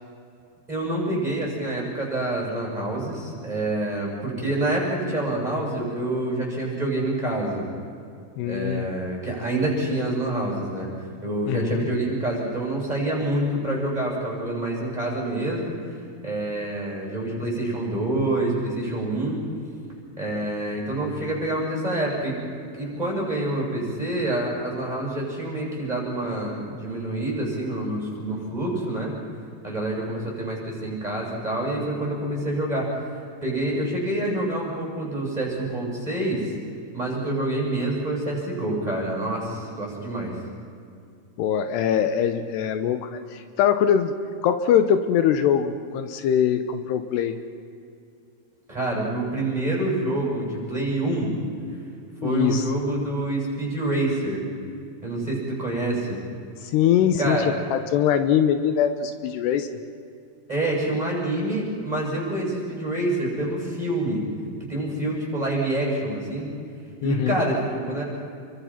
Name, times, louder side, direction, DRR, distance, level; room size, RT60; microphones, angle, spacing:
voice 1, 0.7-7.7 8.4-10.9 11.2-15.9 16.2-19.4 20.2-22.3 22.7-29.2 29.6-33.0 33.4-36.5 36.9-40.3 48.7-51.4 52.2-54.4 55.0-56.2 57.2-57.5 60.5-64.2 64.7-66.5 67.0-68.0, right 1 dB, 10° right, -3 dB, 7.9 m, -27 dB
voice 2, 8.4-8.9 11.5-11.9 41.4-44.2 44.4-47.4 52.2-52.7 56.6-59.7 67.0-67.4, left 9 dB, 80° left, 9 dB, 3.0 m, -22 dB
29.5 x 24.0 x 5.9 m, 2.4 s
omnidirectional pair, 4.9 m